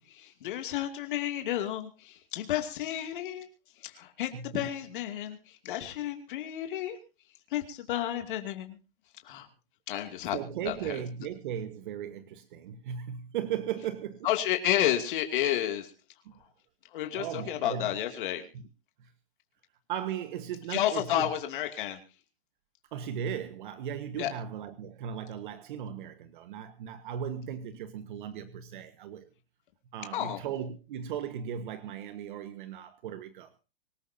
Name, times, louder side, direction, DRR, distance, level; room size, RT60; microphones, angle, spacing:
voice 1, 0.1-3.5 3.8-7.0 7.5-8.8 9.2-9.5 9.9-11.0 14.2-15.9 16.9-18.5 20.7-22.0 24.2-24.3 30.1-30.4, left 12 dB, 60° left, 2.7 m, -31 dB
voice 2, 4.3-4.7 10.3-14.3 16.2-16.4 17.1-18.0 18.5-18.6 19.0-19.1 19.9-21.3 22.9-29.3 29.9-33.6, right 9 dB, 55° right, 1.6 m, -37 dB
25.0 x 14.0 x 2.8 m
hypercardioid pair, 145°, 29 cm